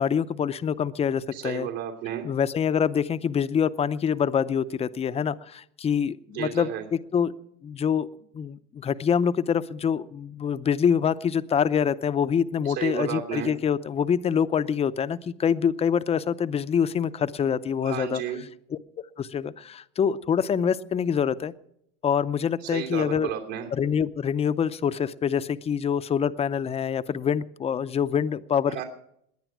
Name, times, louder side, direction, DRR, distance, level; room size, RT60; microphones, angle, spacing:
voice 1, 0.0-1.7 2.2-6.7 7.1-7.3 7.6-8.1 8.3-18.2 18.7-18.8 19.2-21.5 22.0-23.3 23.7-28.8, left 7 dB, 20° left, 14 dB, 0.5 m, -25 dB
voice 2, 1.3-2.3 6.3-6.8 12.6-13.5 17.8-18.4 22.6-23.7 28.7-28.8, right 10 dB, 75° right, 0 dB, 2.9 m, -32 dB
20.0 x 9.7 x 6.1 m, 0.73 s
supercardioid pair, 125°, 31 cm